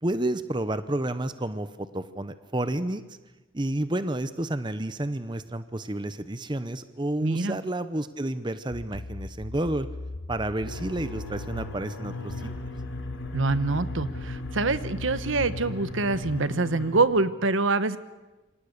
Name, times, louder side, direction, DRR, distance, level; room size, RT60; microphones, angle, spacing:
voice 1, 0.0-3.0 3.5-9.9 10.3-12.5, right 1 dB, 25° right, 12 dB, 0.8 m, -30 dB
voice 2, 7.2-7.6 13.3-18.0, right 3 dB, 75° right, 13 dB, 1.1 m, -25 dB
sound 1, 8.7-16.4, left 2 dB, 45° left, 1.3 m, -39 dB
sound 2, 10.6-17.0, left 2 dB, 70° left, 3.4 m, -37 dB
28.0 x 25.5 x 6.7 m, 1.1 s
head